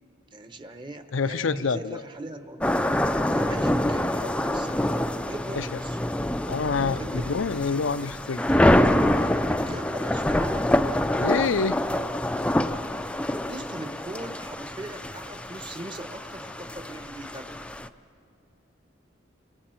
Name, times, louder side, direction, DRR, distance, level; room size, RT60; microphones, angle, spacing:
voice 1, 0.3-2.8 3.3-6.0 7.0-7.3 9.6-10.7 13.5-17.6, right 1 dB, 25° right, 8 dB, 0.9 m, -40 dB
voice 2, 1.1-2.0 5.5-5.8 6.5-8.8 11.2-11.8, left 5 dB, 80° left, 12 dB, 0.6 m, -27 dB
sound 1, 2.6-17.9, left 1 dB, 5° left, 0.4 m, -26 dB
30.0 x 24.5 x 4.5 m, 2.5 s
head